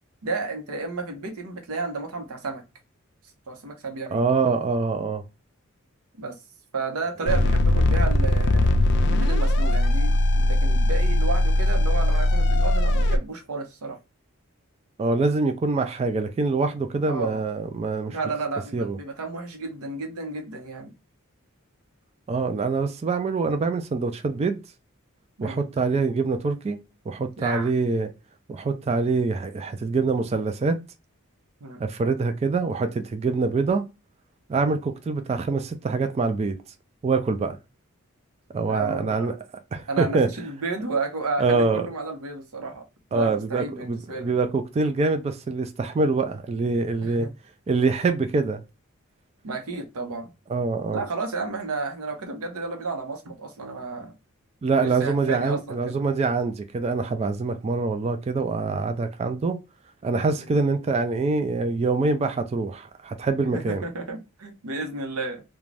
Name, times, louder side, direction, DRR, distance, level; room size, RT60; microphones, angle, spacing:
voice 1, 0.2-2.6 3.5-4.3 6.2-6.4 6.7-8.7 9.1-14.0 17.1-17.4 18.1-20.9 25.4-25.6 27.4-27.7 31.6-31.8 38.7-39.4 39.9-42.8 43.1-44.3 47.0-47.3 49.4-50.3 50.9-54.1 54.8-56.0 60.4-60.5 63.5-65.4, right 3 dB, 85° right, 0.8 m, -32 dB
voice 2, 4.1-5.2 15.0-18.2 18.7-19.0 22.3-24.6 25.4-26.8 27.1-28.1 28.5-30.8 31.8-33.8 34.5-36.6 37.0-37.6 38.5-39.4 39.7-40.3 41.4-41.8 43.1-47.3 47.7-48.6 50.5-51.0 54.6-59.6 60.0-63.8, right 3 dB, 30° right, 0.3 m, -25 dB
sound 1, 7.3-13.2, left 1 dB, 55° left, 0.4 m, -20 dB
2.5 x 2.2 x 3.1 m
head